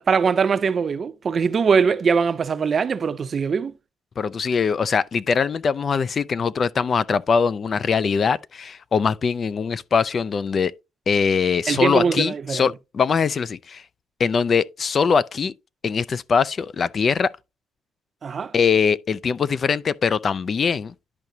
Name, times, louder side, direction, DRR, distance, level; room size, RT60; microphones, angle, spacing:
voice 1, 0.0-3.7 11.7-12.6 18.2-18.5, right 5 dB, 45° right, 0.5 m, -21 dB
voice 2, 4.2-10.7 11.1-13.8 14.2-15.5 15.8-17.3 18.5-20.9, left 6 dB, 45° left, 0.3 m, -22 dB
10.5 x 4.8 x 2.7 m
cardioid pair, 90°, 0 cm